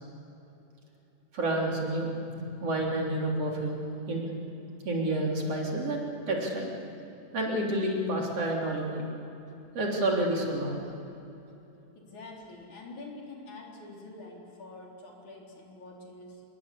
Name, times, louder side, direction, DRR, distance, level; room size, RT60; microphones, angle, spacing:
voice 1, 1.3-4.2 4.8-6.7 7.3-9.0 9.7-10.8, right 1 dB, 50° right, -1 dB, 4.5 m, -29 dB
voice 2, 12.0-16.4, left 2 dB, 65° left, -1 dB, 5.4 m, -46 dB
27.0 x 21.5 x 8.5 m, 2.9 s
omnidirectional pair, 3.6 m